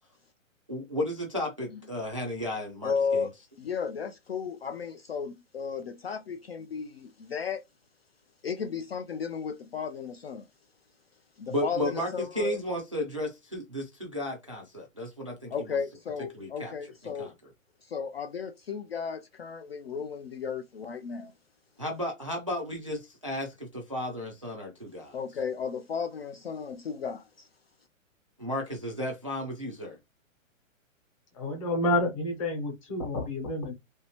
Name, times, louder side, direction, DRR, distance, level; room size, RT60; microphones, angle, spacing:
voice 1, 0.7-3.3 11.5-15.8 16.3-16.7 17.0-17.3 21.8-25.2 28.4-30.0, left 1 dB, 25° right, 0.4 m, -34 dB
voice 2, 2.8-3.3 3.6-7.6 8.4-10.5 11.4-12.6 15.5-17.3 17.8-21.3 25.1-27.5, left 6 dB, 50° left, 0.4 m, -34 dB
voice 3, 31.4-33.7, left 1 dB, 25° left, 1.0 m, -29 dB
3.1 x 2.7 x 2.9 m
hypercardioid pair, 170°, 40 cm